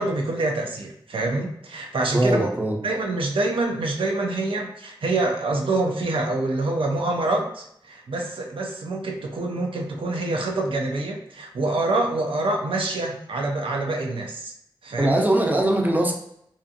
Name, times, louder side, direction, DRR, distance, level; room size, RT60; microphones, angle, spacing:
voice 1, 0.0-2.5 2.8-14.5 14.8-15.3, right 2 dB, 80° right, 2 dB, 0.4 m, -26 dB
voice 2, 2.1-2.8 15.0-16.1, right 1 dB, 20° right, 0 dB, 0.5 m, -21 dB
2.5 x 2.4 x 2.6 m, 0.73 s
wide cardioid pair, 80°, 9 cm